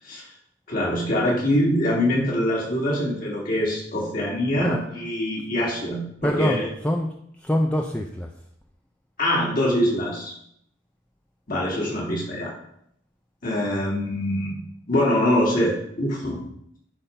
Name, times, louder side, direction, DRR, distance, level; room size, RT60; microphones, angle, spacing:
voice 1, 0.7-6.7 9.2-10.3 11.5-12.5 13.4-14.6 14.9-16.4, left 1 dB, 50° left, -4 dB, 2.9 m, -24 dB
voice 2, 6.2-8.3, equal, 10° left, 2 dB, 0.5 m, -25 dB
11.0 x 3.7 x 5.7 m, 0.71 s
head